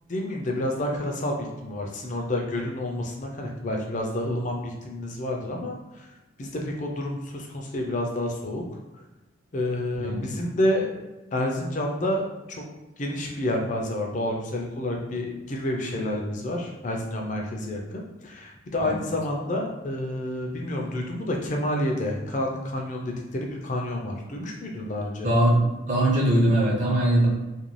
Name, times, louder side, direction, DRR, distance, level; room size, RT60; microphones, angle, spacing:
voice 1, 0.1-6.1 6.4-8.6 9.5-11.0 11.3-12.6 13.0-25.3, left 1 dB, 35° left, 1 dB, 0.4 m, -29 dB
voice 2, 9.9-10.3 18.8-19.0 25.2-25.6 25.9-27.3, right 1 dB, 35° right, -4 dB, 0.7 m, -21 dB
2.5 x 2.3 x 3.1 m, 1.0 s
head